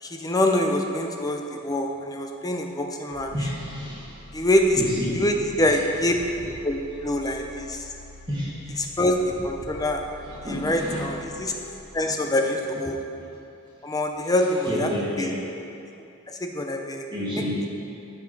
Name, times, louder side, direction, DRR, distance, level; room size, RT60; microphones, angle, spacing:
voice 1, 0.0-3.3 4.3-4.8 5.1-6.1 6.5-7.9 8.8-9.2 9.4-10.0 10.4-11.5 11.9-13.0 13.8-14.9 15.2-15.3 16.3-17.1, left 1 dB, 15° left, 3 dB, 0.6 m, -25 dB
sound 1, 3.1-11.8, equal, 80° left, 2.3 m, -45 dB
voice 2, 3.3-4.2 4.8-5.2 8.3-8.8 10.3-11.0 12.0-12.2 14.7-15.4 17.1-17.6, equal, 20° right, -7 dB, 1.9 m, -30 dB
13.0 x 5.5 x 4.7 m, 2.8 s
head